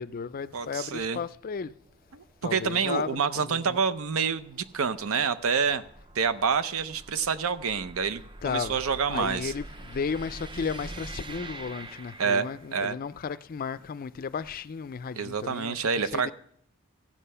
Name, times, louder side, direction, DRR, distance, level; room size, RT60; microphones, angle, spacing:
voice 1, 0.0-1.7 2.4-3.8 8.4-8.8 9.1-15.8 16.1-16.3, left 5 dB, 45° left, 0.4 m, -34 dB
voice 2, 0.5-1.2 2.1-5.8 6.1-9.5 12.2-13.0 15.2-16.3, right 6 dB, 75° right, 0.7 m, -28 dB
sound 1, 1.5-12.9, right 2 dB, 20° right, 0.5 m, -46 dB
16.0 x 7.4 x 5.6 m
head